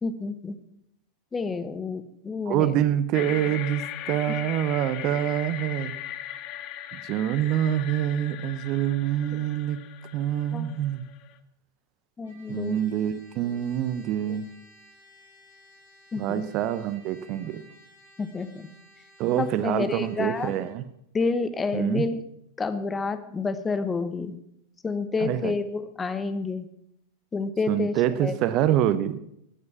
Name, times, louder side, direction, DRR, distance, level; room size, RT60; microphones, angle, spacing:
voice 1, 0.0-0.6 1.3-2.7 10.5-10.7 12.2-12.8 14.3-14.4 16.1-16.4 18.2-18.7 19.4-20.5 21.1-22.2 22.6-24.4 24.8-26.7 27.3-27.9 28.2-28.3, left 4 dB, 15° left, 12 dB, 1.0 m, -29 dB
voice 2, 2.5-5.9 6.9-9.8 10.1-11.0 12.5-14.5 16.2-17.6 19.2-20.9 21.7-22.1 25.2-25.6 27.7-29.2, right 11 dB, 40° right, 14 dB, 0.7 m, -26 dB
sound 1, 3.1-11.4, left 12 dB, 40° left, 0.8 m, -39 dB
Trumpet, 12.2-20.8, equal, 75° right, 6.8 m, -55 dB
14.5 x 9.7 x 5.9 m, 0.76 s
figure-of-eight pair, 90°, 0 cm